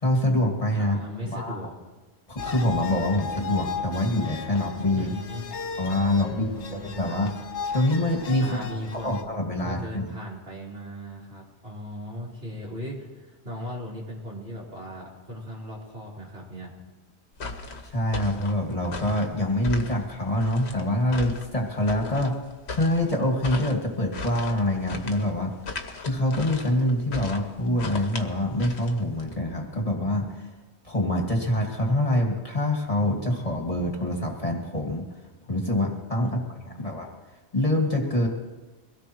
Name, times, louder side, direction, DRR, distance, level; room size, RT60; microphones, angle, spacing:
voice 1, 0.0-1.0 1.3-1.6 2.3-5.1 5.8-7.3 7.7-8.5 8.9-10.1 17.8-22.3 22.7-25.5 26.0-30.5 30.8-35.1 35.5-36.4 36.7-37.1 37.5-38.3, left 1 dB, 30° left, 0 dB, 2.0 m, -25 dB
voice 2, 0.8-1.7 4.9-5.5 6.3-7.2 8.4-9.2 9.6-16.7 36.2-37.0, equal, 65° right, -5 dB, 4.5 m, -37 dB
sound 1, 2.4-9.2, left 5 dB, 85° left, 1.3 m, -36 dB
sound 2, 17.3-29.3, left 3 dB, 70° left, 1.4 m, -38 dB
23.0 x 17.0 x 3.1 m, 1.3 s
omnidirectional pair, 1.1 m